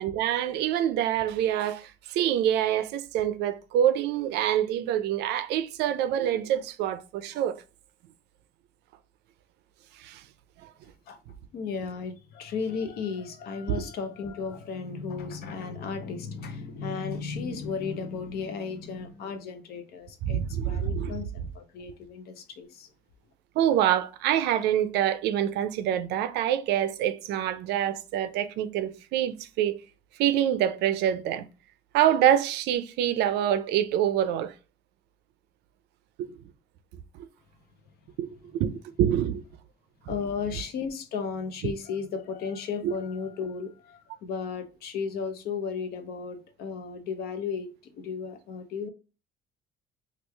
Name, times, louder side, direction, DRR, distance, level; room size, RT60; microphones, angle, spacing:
voice 1, 0.0-7.6 10.0-10.2 13.7-13.8 20.2-21.2 23.6-29.8 30.2-31.4 31.9-34.5 36.2-36.3 37.2-37.3 38.2-38.7 39.0-39.4 40.1-40.2 41.6-41.7 42.8-42.9, right 11 dB, 80° right, 0.4 m, -26 dB
voice 2, 11.5-22.9 40.1-48.9, left 5 dB, 65° left, 0.6 m, -34 dB
3.0 x 2.4 x 3.3 m
cardioid pair, 110°, 17 cm